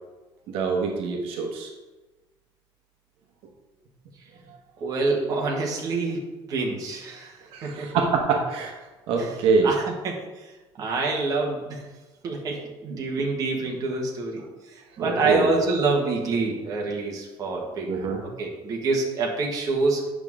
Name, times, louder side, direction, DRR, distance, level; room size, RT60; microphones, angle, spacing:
voice 1, 0.5-1.7 4.5-4.6 7.5-8.7 9.1-9.7 15.0-15.5 17.9-18.2, right 4 dB, 75° right, 1 dB, 1.2 m, -24 dB
voice 2, 4.8-7.4 7.6-7.9 9.2-9.3 9.6-10.2 10.8-11.8 12.2-14.4 14.7-17.9 18.2-20.0, right 3 dB, 40° right, -1 dB, 1.6 m, -26 dB
8.9 x 6.2 x 3.7 m, 1.2 s
cardioid pair, 165°, 10 cm